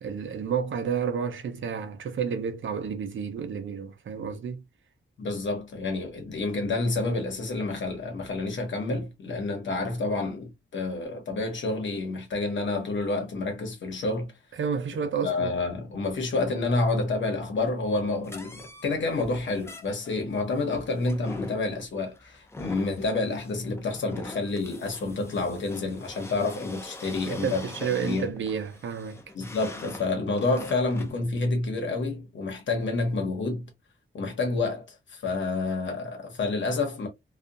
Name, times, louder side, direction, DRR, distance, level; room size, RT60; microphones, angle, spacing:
voice 1, 0.0-4.6 14.6-15.5 27.2-29.2, right 6 dB, 70° right, 0.6 m, -30 dB
voice 2, 5.2-14.3 15.2-27.7 28.0-28.3 29.3-33.7 34.1-37.1, left 3 dB, 70° left, 1.0 m, -29 dB
sound 1, 18.2-31.2, left 2 dB, 15° left, 0.4 m, -44 dB
2.7 x 2.4 x 2.4 m
wide cardioid pair, 175°, 20 cm